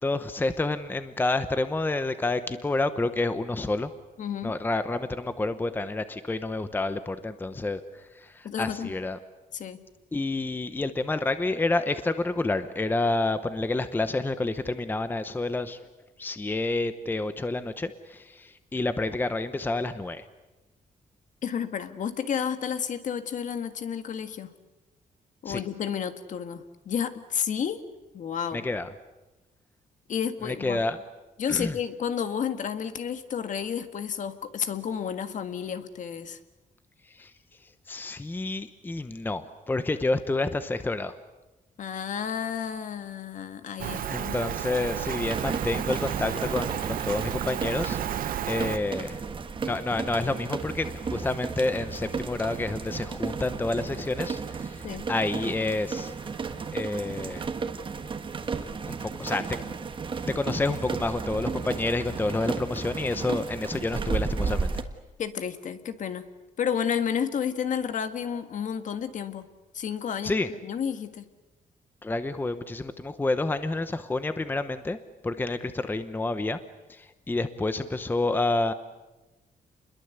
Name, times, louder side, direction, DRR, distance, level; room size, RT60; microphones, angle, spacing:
voice 1, 0.0-3.9 4.4-9.2 10.1-15.8 16.2-20.2 25.5-25.6 28.5-28.9 30.4-31.0 31.5-31.8 37.1-37.3 37.9-41.1 44.1-48.0 48.5-49.2 49.6-56.1 56.7-57.4 58.9-59.6 60.3-64.8 70.2-70.5 72.0-75.0 75.2-76.6 76.9-78.7, left 2 dB, 15° left, 11 dB, 0.9 m, -29 dB
voice 2, 4.2-4.5 8.4-8.9 9.5-9.8 21.4-24.5 25.4-27.8 28.1-28.7 30.1-30.9 31.4-36.4 41.8-44.5 54.8-55.0 65.2-66.3 66.6-69.5 69.7-70.3 70.6-71.2, left 8 dB, 55° left, 9 dB, 1.6 m, -31 dB
Rain, 43.8-48.8, right 11 dB, 65° right, 0.8 m, -32 dB
sound 1, 45.2-64.8, right 5 dB, 35° right, 1.6 m, -34 dB
28.5 x 22.0 x 8.1 m, 1.1 s
wide cardioid pair, 160°, 15 cm